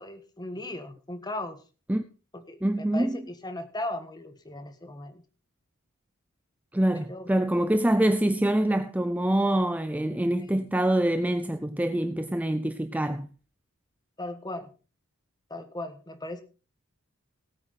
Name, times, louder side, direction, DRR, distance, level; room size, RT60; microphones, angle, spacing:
voice 1, 0.0-1.6 2.3-5.2 7.1-7.3 10.4-10.5 14.2-14.7 15.5-16.4, left 1 dB, 20° left, 1.4 m, -37 dB
voice 2, 2.6-3.2 6.7-13.3, right 1 dB, 5° right, 0.5 m, -25 dB
17.5 x 8.7 x 4.1 m
head